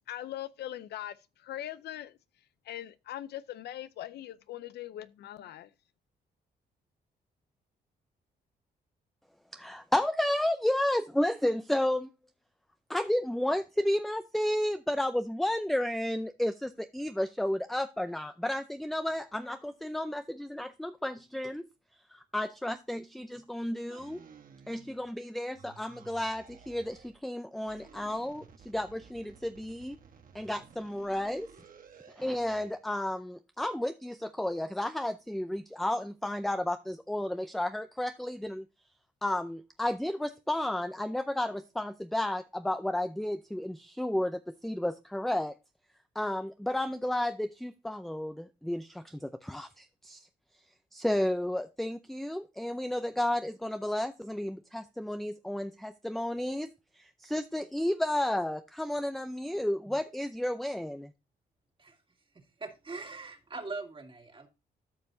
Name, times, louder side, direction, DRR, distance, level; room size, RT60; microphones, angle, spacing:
voice 1, 0.1-2.2 2.7-5.7, left 12 dB, 85° left, 0.5 m, -41 dB
voice 2, 9.5-12.1 12.9-21.7 22.1-24.2 24.7-30.0 30.3-31.5 32.2-38.7 39.2-45.5 46.2-50.3 50.9-56.7 57.0-61.1, left 1 dB, ahead, 0.5 m, -32 dB
sound 1, 23.9-25.2 25.5-27.2 27.6-32.8, right 6 dB, 55° right, 1.3 m, -55 dB
voice 3, 62.6-64.5, right 3 dB, 30° right, 2.0 m, -41 dB
13.5 x 5.4 x 2.6 m
cardioid pair, 85°, 17 cm